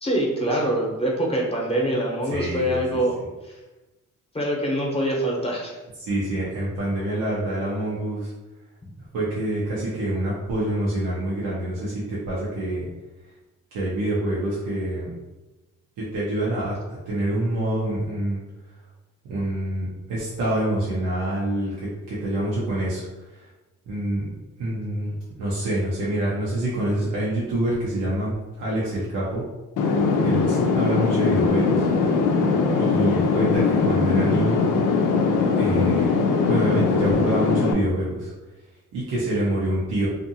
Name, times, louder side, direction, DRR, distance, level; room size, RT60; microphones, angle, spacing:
voice 1, 0.0-3.2 4.3-5.8, right 1 dB, 20° left, -3 dB, 0.8 m, -24 dB
voice 2, 2.3-2.8 6.0-8.3 9.1-12.9 13.7-15.1 16.0-18.4 19.2-23.5 23.9-24.3 24.6-29.4 30.2-31.9 32.8-34.6 35.6-36.0 36.5-38.3 38.9-40.1, right 1 dB, 85° right, -8 dB, 0.8 m, -26 dB
sound 1, 29.8-37.7, left 4 dB, 75° left, 0.5 m, -21 dB
2.5 x 2.5 x 2.7 m, 1.1 s
cardioid pair, 70°, 32 cm